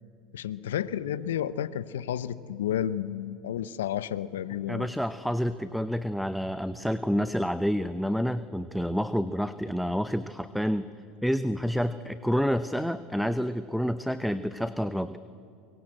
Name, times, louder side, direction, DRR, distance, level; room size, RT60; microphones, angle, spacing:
voice 1, 0.3-4.9, left 10 dB, 80° left, 17 dB, 0.8 m, -31 dB
voice 2, 4.7-10.9 11.2-15.2, equal, ahead, 12 dB, 0.7 m, -28 dB
23.5 x 23.0 x 7.7 m, 2.6 s
hypercardioid pair, 85°, 0 cm